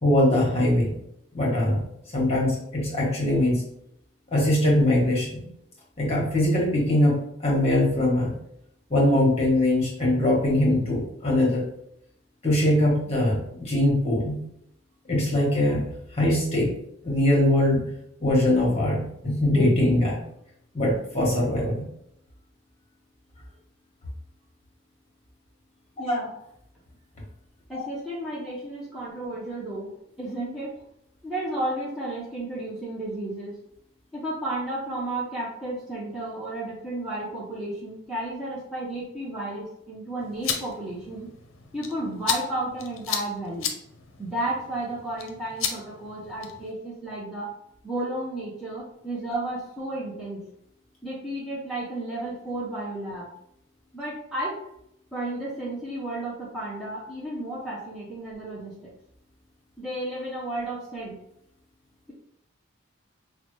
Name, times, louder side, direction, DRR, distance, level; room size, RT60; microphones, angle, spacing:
voice 1, 0.0-1.0 1.3-1.8 2.1-3.6 4.3-5.4 6.0-8.3 8.9-11.6 12.4-14.4 15.1-15.8 16.1-16.7 17.0-17.8 18.2-20.2 20.7-21.9 26.1-26.2 27.7-27.9, left 1 dB, 30° left, -3 dB, 1.2 m, -22 dB
voice 2, 26.0-26.3 27.7-30.7 31.2-33.6 34.1-41.3 41.7-43.7 44.2-47.5 47.8-50.4 51.0-53.3 53.9-54.6 55.1-58.9 59.8-61.2, right 1 dB, ahead, -8 dB, 0.6 m, -32 dB
sound 1, 40.2-46.7, left 7 dB, 70° left, 0.6 m, -34 dB
5.5 x 2.1 x 3.1 m, 0.77 s
head